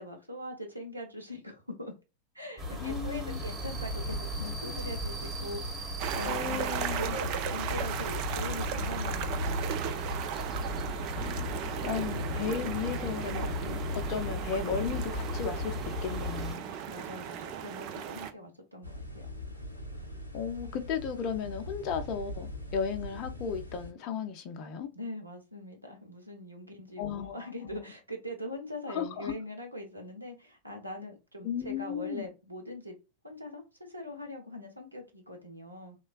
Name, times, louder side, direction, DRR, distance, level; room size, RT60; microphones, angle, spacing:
voice 1, 0.0-1.9 2.3-10.0 16.6-19.3 24.9-33.0 33.2-36.0, left 1 dB, 85° right, 0.8 m, -42 dB
sound 1, 2.6-16.6, left 1 dB, 10° right, 1.5 m, -36 dB
voice 2, 2.8-3.4 6.2-7.1 11.1-11.5 11.8-16.7 20.3-24.9 27.0-27.4 27.6-27.8 28.9-29.3 31.4-32.3, left 7 dB, 40° left, 0.5 m, -35 dB
sound 2, 6.0-18.3, right 9 dB, 40° right, 0.4 m, -36 dB
sound 3, 18.8-23.9, left 1 dB, 85° left, 0.6 m, -42 dB
3.1 x 2.3 x 2.3 m
figure-of-eight pair, 90°, 0 cm